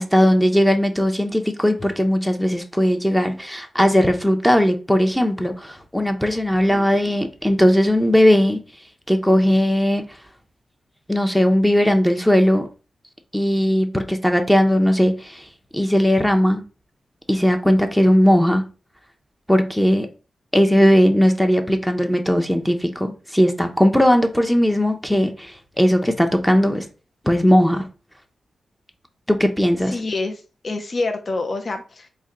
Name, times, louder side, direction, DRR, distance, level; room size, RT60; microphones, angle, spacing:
voice 1, 0.0-8.6 9.1-10.0 11.1-12.7 13.3-16.6 17.3-18.6 19.5-20.1 20.5-26.9 27.2-27.9 29.3-30.0, equal, 5° left, 0.6 m, -18 dB
voice 2, 29.9-32.1, left 3 dB, 45° left, 0.5 m, -27 dB
4.2 x 2.2 x 3.7 m
cardioid pair, 80°, 0 cm